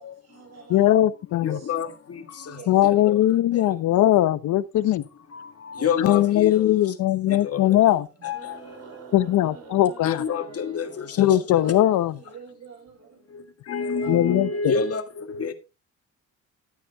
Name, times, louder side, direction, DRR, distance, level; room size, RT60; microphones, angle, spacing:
voice 1, 0.0-0.9 1.3-1.9 2.3-2.8 3.6-3.8 4.0-4.3 5.7-6.2 7.2-8.0 11.2-13.3 13.8-14.6, right 3 dB, 60° right, 6.4 m, -43 dB
voice 2, 0.7-1.6 2.7-5.0 6.0-8.1 9.1-10.2 11.2-12.1 14.1-14.7, left 13 dB, 75° left, 0.9 m, -20 dB
voice 3, 1.4-2.6 3.1-3.2 3.5-3.7 5.3-6.7 7.3-7.6 8.2-8.6 10.0-11.3 13.7-15.5, left 6 dB, 50° left, 1.9 m, -28 dB
sound 1, 8.3-11.7 12.9-13.0, right 5 dB, 90° right, 5.5 m, -46 dB
12.5 x 8.4 x 3.5 m
cardioid pair, 90°, 30 cm